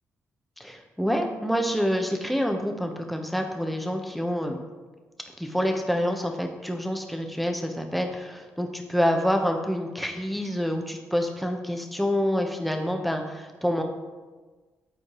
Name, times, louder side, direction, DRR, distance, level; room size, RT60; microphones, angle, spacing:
voice 1, 0.6-4.6 5.4-13.8, equal, ahead, 4 dB, 1.1 m, -27 dB
10.0 x 4.4 x 3.2 m, 1.3 s
supercardioid pair, 50°, 6 cm